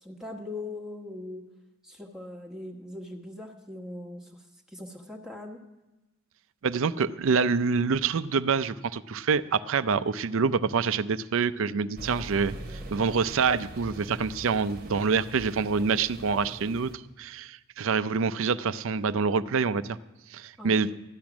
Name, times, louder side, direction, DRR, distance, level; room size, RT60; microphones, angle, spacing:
voice 1, 0.0-1.4 1.8-4.3 4.7-5.6 12.5-12.9 20.6-21.0, left 2 dB, 5° right, 0 dB, 1.1 m, -41 dB
voice 2, 6.6-20.0 20.3-20.9, right 5 dB, 65° right, 14 dB, 0.5 m, -26 dB
sound 1, 12.0-17.0, right 1 dB, 45° right, 1.0 m, -42 dB
14.0 x 10.5 x 6.0 m, 1.0 s
head